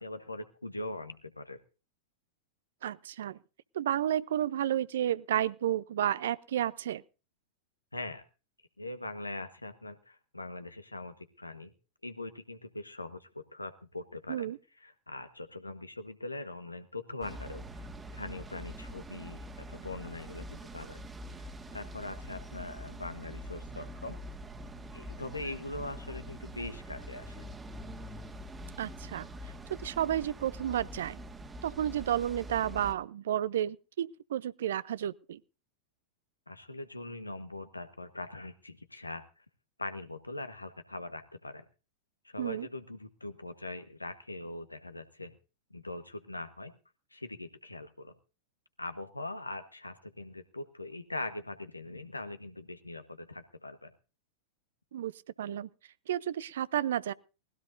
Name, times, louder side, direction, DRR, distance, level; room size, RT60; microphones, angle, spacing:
voice 1, 0.0-1.6 7.9-8.2 8.8-11.7 12.0-14.5 14.8-17.6 18.1-21.0 21.4-21.5 21.7-24.2 24.9-27.5 36.5-39.2 39.8-41.6 42.2-45.3 45.7-46.7 47.1-48.2 48.8-53.9, left 2 dB, 85° left, 1.4 m, -42 dB
voice 2, 2.8-3.4 3.7-7.0 14.3-14.6 28.8-29.3 29.8-31.2 31.6-35.4 42.4-42.7 54.9-55.1 55.4-55.7 56.1-57.1, right 11 dB, 60° right, 0.7 m, -31 dB
sound 1, 17.2-32.9, equal, 15° right, 1.6 m, -44 dB
20.0 x 16.0 x 2.7 m
figure-of-eight pair, 95°, 0 cm